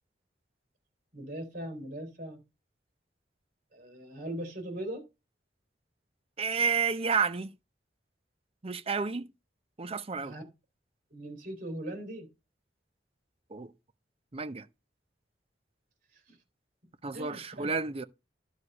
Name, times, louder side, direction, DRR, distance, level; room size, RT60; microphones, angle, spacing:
voice 1, 1.1-2.4 3.7-5.1 10.2-10.4 11.1-12.3 16.3-16.4 17.1-17.7, right 1 dB, 50° right, 3.6 m, -40 dB
voice 2, 6.4-7.5 8.6-9.3 9.8-10.4 13.5-13.7 14.3-14.7 17.0-18.0, right 5 dB, 35° right, 0.6 m, -30 dB
11.5 x 4.8 x 5.4 m
head